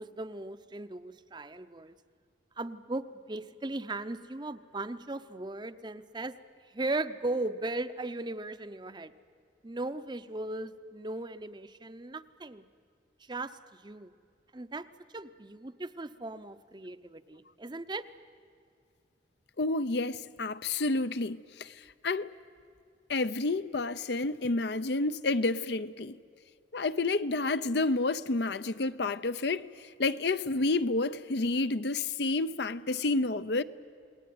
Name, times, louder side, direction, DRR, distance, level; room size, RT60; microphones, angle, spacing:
voice 1, 0.0-1.9 2.6-6.3 6.7-9.1 9.6-12.7 13.3-14.1 14.5-14.9 15.1-18.1, right 2 dB, 25° right, 0.7 m, -37 dB
voice 2, 19.6-21.7 22.0-22.3 23.1-26.2 26.7-29.7 30.0-33.6, left 3 dB, 65° left, 0.7 m, -29 dB
29.0 x 20.0 x 9.5 m
head